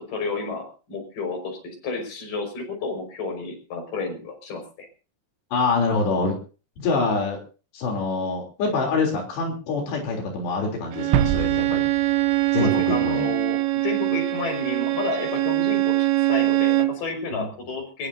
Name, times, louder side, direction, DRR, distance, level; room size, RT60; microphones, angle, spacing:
voice 1, 0.0-4.9 12.6-18.1, left 3 dB, 55° left, 5 dB, 7.0 m, -31 dB
voice 2, 5.5-6.4 6.8-7.4 7.7-11.9 12.5-13.3 17.3-17.5, left 3 dB, 85° left, 0 dB, 5.7 m, -25 dB
Bowed string instrument, 10.9-17.0, right 17 dB, 70° right, 2.8 m, -23 dB
sound 1, 11.1-13.0 13.3-13.4, right 8 dB, 90° right, 3.3 m, -27 dB
22.0 x 21.5 x 2.8 m, 0.38 s
omnidirectional pair, 4.8 m